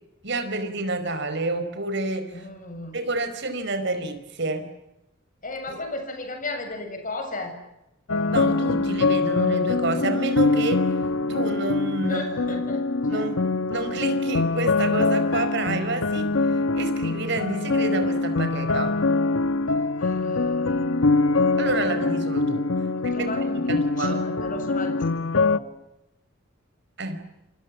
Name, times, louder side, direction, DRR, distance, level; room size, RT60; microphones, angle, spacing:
voice 1, 0.2-2.5 2.9-4.7 5.7-5.8 8.3-10.9 11.3-12.6 13.0-13.4 13.7-19.0 21.6-22.7 23.0-23.3 23.7-24.2 27.0-27.2, right 2 dB, 60° right, 9 dB, 4.8 m, -29 dB
voice 2, 2.3-3.0 5.4-7.6 12.0-12.9 13.1-13.3 20.0-21.6 22.9-25.7, left 2 dB, 40° left, 5 dB, 7.3 m, -35 dB
sound 1, 8.1-25.6, left 3 dB, 90° left, 1.0 m, -24 dB
29.0 x 26.5 x 7.5 m, 0.90 s
head